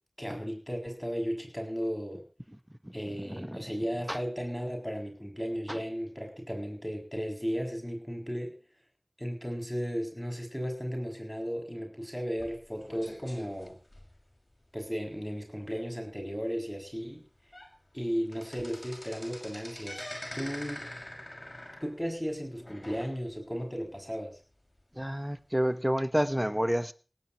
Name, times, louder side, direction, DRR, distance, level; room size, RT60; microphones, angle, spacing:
voice 1, 0.2-2.2 2.9-8.5 9.2-13.8 14.7-17.2 17.9-20.0 20.3-20.9 21.8-24.4, equal, 10° left, 2 dB, 6.9 m, -35 dB
sound 1, 12.4-14.6 15.1-15.2 15.6-15.7 16.2-16.3 17.0-17.1 17.4-17.7 18.0-23.5 23.9-24.0 24.8-24.9, left 1 dB, 40° left, 5.9 m, -45 dB
voice 2, 25.0-26.9, equal, 10° right, 12 dB, 1.2 m, -29 dB
18.0 x 17.5 x 3.1 m, 0.36 s
wide cardioid pair, 40°, 0 cm